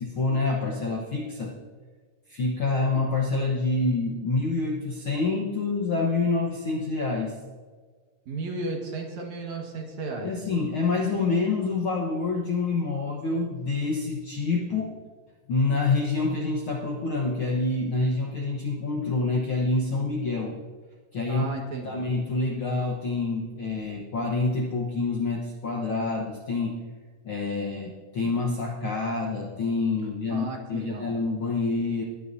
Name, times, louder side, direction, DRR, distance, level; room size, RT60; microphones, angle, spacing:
voice 1, 0.1-1.6 2.3-7.3 10.2-14.9 15.5-20.6 21.1-21.4 21.8-26.8 27.2-32.0, left 3 dB, 60° left, -1 dB, 1.4 m, -27 dB
voice 2, 8.3-10.3 14.7-14.8 21.3-22.0 30.3-31.1, right 3 dB, 60° right, 0 dB, 2.8 m, -34 dB
19.5 x 10.0 x 2.7 m, 1.5 s
omnidirectional pair, 3.8 m